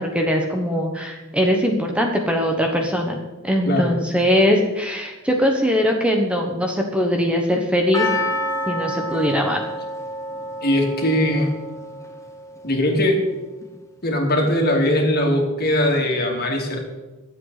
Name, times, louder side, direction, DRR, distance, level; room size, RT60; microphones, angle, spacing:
voice 1, 0.0-3.2 3.4-8.1 8.7-9.6, equal, 5° right, 1 dB, 1.3 m, -21 dB
Percussion, 7.9-12.3 12.6-12.7, left 1 dB, 15° left, 1.1 m, -28 dB
voice 2, 10.6-11.5 12.6-13.2 14.0-16.8, left 1 dB, 45° left, 1 dB, 2.8 m, -20 dB
24.5 x 8.2 x 4.1 m, 1.1 s
head